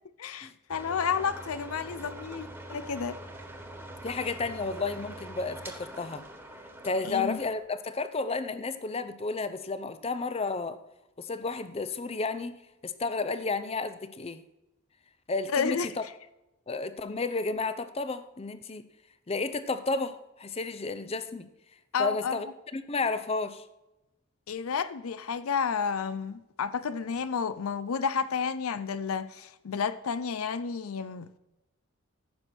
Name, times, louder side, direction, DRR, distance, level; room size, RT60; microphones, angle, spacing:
voice 1, 0.2-3.2 7.0-7.4 15.5-16.1 21.9-22.4 24.5-31.4, left 6 dB, 80° left, 0.5 m, -31 dB
sound 1, 0.7-7.6, right 1 dB, 10° right, 1.4 m, -44 dB
voice 2, 4.0-6.2 6.8-10.8 11.2-12.6 12.8-14.4 15.3-15.8 16.7-18.8 19.3-21.5 22.0-22.5 22.7-23.6, left 3 dB, 30° left, 0.6 m, -32 dB
15.0 x 6.3 x 4.4 m
head